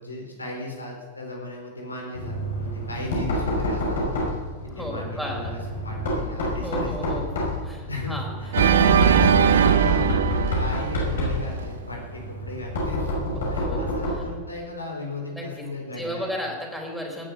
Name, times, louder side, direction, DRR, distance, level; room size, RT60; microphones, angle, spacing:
voice 1, 0.0-4.2 4.6-7.2 7.9-13.1 13.5-16.3, left 2 dB, 80° left, 0 dB, 4.5 m, -36 dB
Knock, 2.1-14.4, left 1 dB, 60° left, 5.7 m, -28 dB
voice 2, 4.7-5.5 6.6-7.3 7.6-8.3 13.5-13.9 14.2-14.3 15.3-17.3, equal, ahead, -1 dB, 4.1 m, -34 dB
Organ, 8.5-11.6, right 9 dB, 65° right, 0.6 m, -20 dB
18.0 x 11.0 x 6.9 m, 1.5 s
figure-of-eight pair, 90°, 0 cm